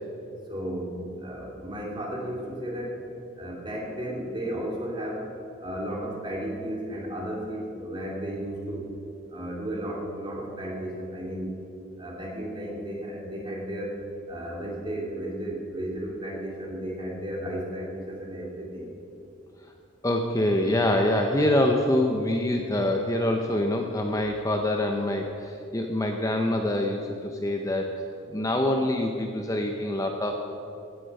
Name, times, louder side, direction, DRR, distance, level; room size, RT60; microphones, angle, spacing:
voice 1, 0.5-3.0 3.4-5.3 5.6-8.9 9.3-11.6 12.0-18.9, right 1 dB, 25° right, -2 dB, 2.6 m, -34 dB
voice 2, 20.0-28.0 28.3-30.4, left 1 dB, 15° left, 2 dB, 0.7 m, -25 dB
16.0 x 9.8 x 5.4 m, 2.8 s
head